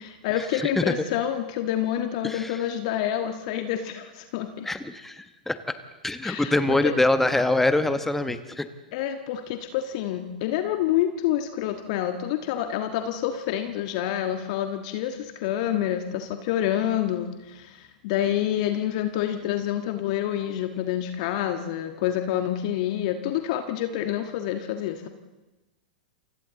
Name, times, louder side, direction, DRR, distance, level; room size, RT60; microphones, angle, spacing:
voice 1, 0.0-4.7 6.2-6.9 8.9-25.1, left 11 dB, 50° left, 6 dB, 1.5 m, -28 dB
voice 2, 2.2-2.6 4.6-5.6 6.0-8.7, left 2 dB, 5° left, 10 dB, 1.2 m, -24 dB
28.5 x 25.5 x 4.0 m, 1.1 s
figure-of-eight pair, 95°, 5 cm